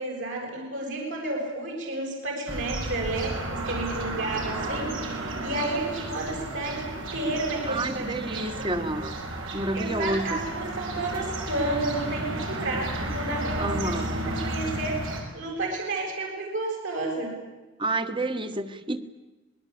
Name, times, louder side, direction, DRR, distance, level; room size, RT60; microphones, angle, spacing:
voice 1, 0.0-8.6 9.7-17.3, right 2 dB, 70° right, 0 dB, 7.1 m, -31 dB
sound 1, 2.5-15.2, right 1 dB, 85° right, 6.0 m, -33 dB
voice 2, 7.7-9.2 9.5-10.4 13.6-14.2 17.8-19.0, right 2 dB, 25° right, 10 dB, 1.5 m, -29 dB
27.0 x 20.5 x 8.7 m, 1.1 s
head